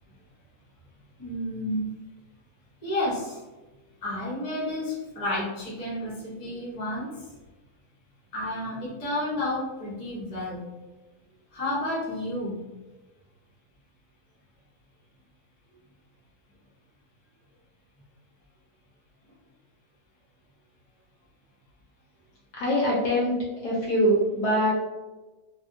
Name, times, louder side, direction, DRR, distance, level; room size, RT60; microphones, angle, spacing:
voice 1, 1.2-1.8 2.8-3.4 4.0-7.1 8.3-10.6 11.5-12.6, left 1 dB, 30° left, -7 dB, 0.7 m, -31 dB
voice 2, 22.6-23.4 23.6-24.7, equal, 65° left, -5 dB, 1.1 m, -23 dB
3.3 x 2.2 x 2.6 m, 1.1 s
omnidirectional pair, 2.1 m